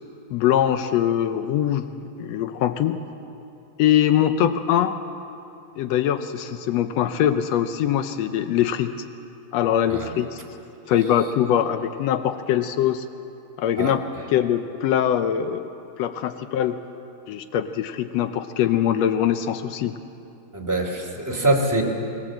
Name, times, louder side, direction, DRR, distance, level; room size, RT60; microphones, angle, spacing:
voice 1, 0.3-3.0 3.8-4.9 5.8-8.9 9.5-10.4 10.9-13.0 13.6-14.0 14.3-15.7 16.0-16.8 17.3-19.9, left 10 dB, 85° left, 9 dB, 1.5 m, -22 dB
voice 2, 20.5-21.8, right 2 dB, 5° right, 0 dB, 2.0 m, -23 dB
25.5 x 18.5 x 7.7 m, 2.8 s
omnidirectional pair, 3.9 m